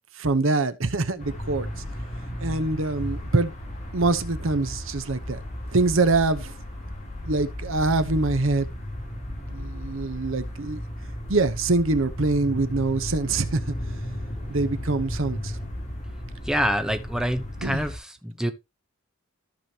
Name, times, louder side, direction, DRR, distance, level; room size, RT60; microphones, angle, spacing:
voice 1, 0.2-1.7 2.4-3.5 3.9-5.4 5.7-6.5 7.2-8.7 9.5-10.8 11.3-13.7 14.5-15.5 17.6-17.8, right 3 dB, 65° right, 0.9 m, -24 dB
sound 1, 1.2-18.0, equal, 35° left, 3.1 m, -34 dB
voice 2, 16.5-18.5, equal, 5° right, 0.8 m, -26 dB
14.0 x 5.2 x 2.9 m
head